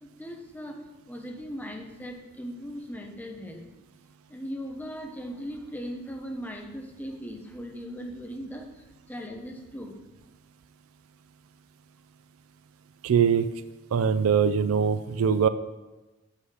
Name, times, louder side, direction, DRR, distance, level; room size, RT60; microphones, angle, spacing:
voice 1, 0.0-0.8 1.1-3.6 4.3-8.7 9.1-9.9, equal, 10° left, 2 dB, 0.7 m, -38 dB
voice 2, 13.0-13.5 13.9-15.5, right 7 dB, 80° right, 13 dB, 0.4 m, -22 dB
6.3 x 5.6 x 4.8 m, 1.1 s
head